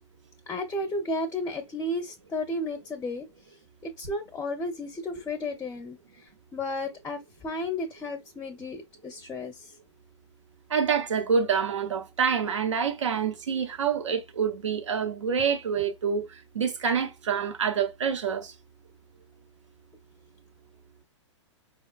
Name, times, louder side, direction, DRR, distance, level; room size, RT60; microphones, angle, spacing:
voice 1, 0.5-3.3 3.8-9.7, left 1 dB, 15° left, 0.5 m, -33 dB
voice 2, 10.7-18.5, right 6 dB, 75° right, 0.8 m, -27 dB
4.6 x 2.2 x 2.3 m
figure-of-eight pair, 110°, 16 cm